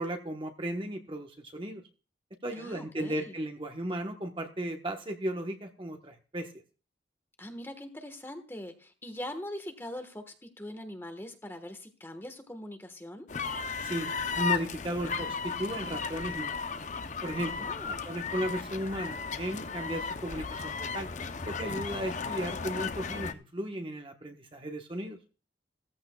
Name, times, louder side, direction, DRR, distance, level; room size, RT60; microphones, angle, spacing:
voice 1, 0.0-1.8 2.4-6.5 13.8-16.6 17.2-21.1 21.5-25.2, right 1 dB, 30° right, 4 dB, 1.1 m, -35 dB
voice 2, 2.5-3.4 7.4-13.3 17.4-18.0, left 1 dB, 15° left, 7 dB, 1.4 m, -42 dB
sound 1, 13.3-23.3, left 5 dB, 40° left, 0.6 m, -35 dB
16.0 x 14.5 x 2.3 m, 0.36 s
head